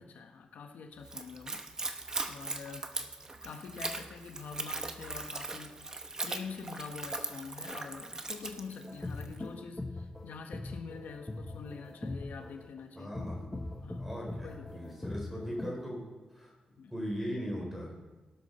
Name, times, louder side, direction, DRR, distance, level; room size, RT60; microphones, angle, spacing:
voice 1, 0.0-1.6 2.3-2.9 3.4-5.8 6.2-13.1 13.8-14.0 14.3-15.0 16.8-16.9, left 5 dB, 80° left, 4 dB, 1.3 m, -45 dB
Splash splatter / Trickle dribble, 1.0-9.4, right 3 dB, 25° right, 0.9 m, -39 dB
sound 1, 8.8-15.8, left 2 dB, 10° left, 1.1 m, -41 dB
voice 2, 13.0-13.5 14.0-16.0 16.3-16.5 16.9-18.0, equal, 5° right, -1 dB, 3.9 m, -39 dB
16.5 x 12.0 x 4.4 m, 1.3 s
wide cardioid pair, 175°, 3 cm